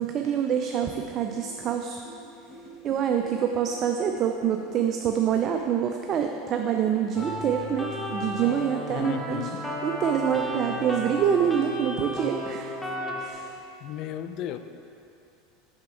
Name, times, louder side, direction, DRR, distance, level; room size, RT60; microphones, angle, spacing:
voice 1, 0.0-2.0 2.8-9.4 9.8-12.7 13.2-13.5, right 8 dB, 40° right, 4 dB, 0.3 m, -26 dB
sound 1, 1.3-9.5, equal, 15° left, 1.1 m, -47 dB
sound 2, 7.1-13.3, left 1 dB, ahead, 0.8 m, -33 dB
voice 2, 8.9-9.6 13.8-14.6, left 10 dB, 55° left, 10 dB, 0.3 m, -34 dB
6.3 x 5.8 x 3.7 m, 2.6 s
supercardioid pair, 125°, 0 cm